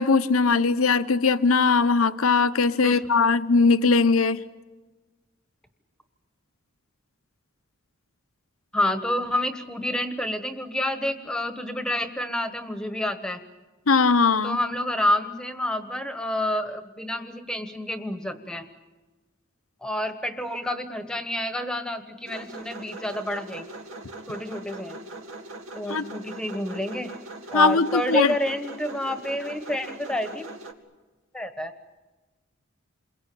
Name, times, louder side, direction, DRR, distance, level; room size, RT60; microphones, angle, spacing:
voice 1, 0.0-4.4 13.9-14.6 25.9-26.0 27.5-28.3, left 4 dB, 90° left, 10 dB, 0.9 m, -20 dB
voice 2, 8.7-13.4 14.4-18.7 19.8-23.8 24.3-25.0 25.7-27.1 27.5-30.4 31.3-31.7, left 1 dB, 5° left, 8 dB, 1.3 m, -29 dB
sound 1, 22.2-30.7, right 2 dB, 80° right, 2.3 m, -41 dB
28.5 x 22.0 x 8.6 m, 1.2 s
head